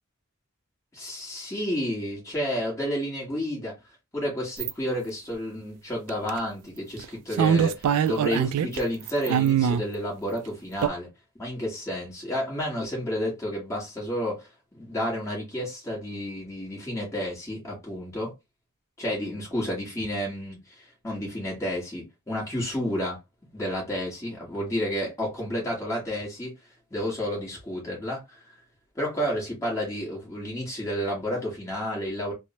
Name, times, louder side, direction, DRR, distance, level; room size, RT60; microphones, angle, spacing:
voice 1, 0.9-3.8 4.1-11.1 11.3-18.3 19.0-23.2 23.5-26.5 26.9-28.4 28.9-32.3, equal, 15° left, 1.3 m, -31 dB
sound 1, 4.6-4.7 6.1-6.4 7.0-7.1 7.3-8.8 9.1-9.8 10.8-10.9, right 8 dB, 90° right, 0.3 m, -22 dB
3.1 x 2.0 x 2.8 m
head